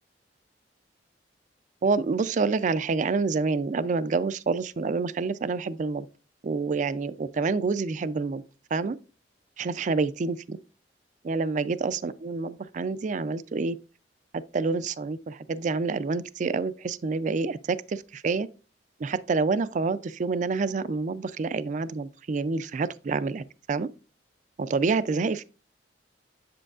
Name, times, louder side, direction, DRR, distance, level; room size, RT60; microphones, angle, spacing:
voice 1, 1.8-6.1 6.4-8.4 8.7-9.0 9.6-10.6 11.2-13.8 14.5-18.5 19.0-23.9 24.6-25.4, right 4 dB, 45° right, 0.4 m, -27 dB
7.6 x 7.4 x 2.4 m
head